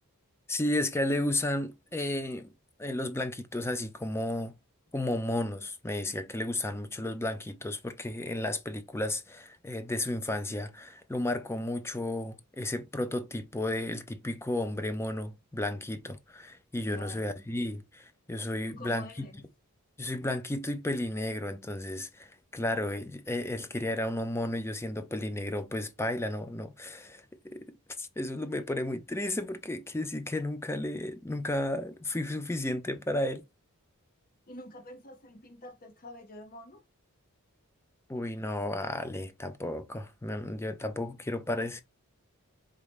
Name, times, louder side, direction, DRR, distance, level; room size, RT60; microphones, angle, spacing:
voice 1, 0.5-2.5 2.8-4.5 4.9-19.1 20.0-27.7 28.0-33.4 38.1-41.8, left 1 dB, 10° left, 0.4 m, -33 dB
voice 2, 16.9-17.3 18.7-19.4 28.6-28.7 34.5-36.8, left 1 dB, 40° left, 0.8 m, -47 dB
4.1 x 3.7 x 3.4 m
head